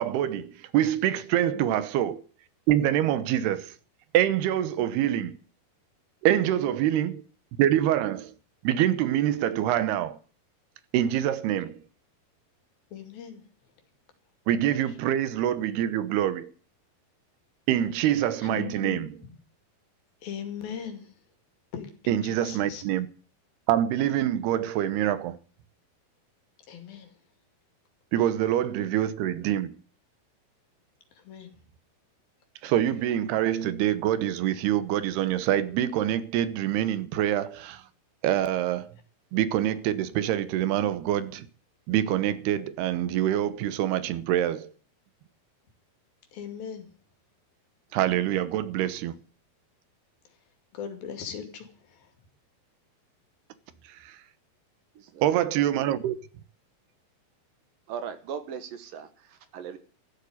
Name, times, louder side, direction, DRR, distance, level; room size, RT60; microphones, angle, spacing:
voice 1, 0.0-2.2 2.7-3.7 4.1-5.4 6.2-7.2 7.6-8.3 8.6-10.2 10.9-11.8 14.5-16.5 17.7-19.1 22.1-23.1 23.7-25.4 28.1-29.8 32.6-37.8 38.2-38.9 39.3-41.5 41.9-44.7 47.9-49.1 54.0-54.1 55.2-56.2, right 11 dB, 85° right, 3.1 m, -25 dB
voice 2, 4.8-5.3 6.3-6.7 12.9-13.4 18.4-19.1 20.2-21.1 21.7-22.8 26.7-27.1 31.3-31.5 46.3-46.9 50.7-52.1, left 8 dB, 70° left, 4.1 m, -39 dB
voice 3, 54.9-55.3 57.9-59.8, right 7 dB, 65° right, 2.8 m, -38 dB
14.0 x 8.3 x 9.6 m
omnidirectional pair, 4.5 m